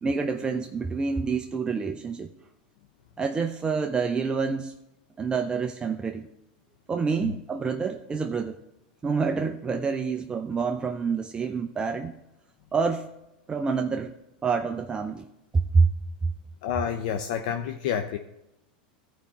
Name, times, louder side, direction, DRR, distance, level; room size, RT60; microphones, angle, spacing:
voice 1, 0.0-2.3 3.2-4.7 5.2-6.3 6.9-8.6 9.0-12.1 12.7-13.1 13.5-14.1 14.4-15.3 15.5-15.9 16.2-16.3, right 5 dB, 20° right, 0.5 m, -27 dB
voice 2, 16.6-18.2, left 8 dB, 65° left, 0.6 m, -29 dB
14.5 x 5.1 x 4.3 m
hypercardioid pair, 110°, 5 cm